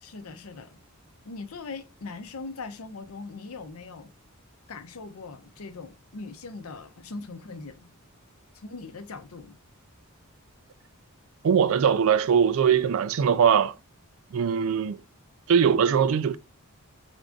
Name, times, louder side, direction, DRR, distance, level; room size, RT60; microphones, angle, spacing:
voice 1, 0.0-0.8 1.2-4.1 4.7-7.9 8.5-9.6, left 3 dB, 75° left, 0.7 m, -40 dB
voice 2, 11.4-13.7 14.3-15.0 15.5-16.4, right 7 dB, 65° right, 0.3 m, -21 dB
3.7 x 3.6 x 3.7 m
head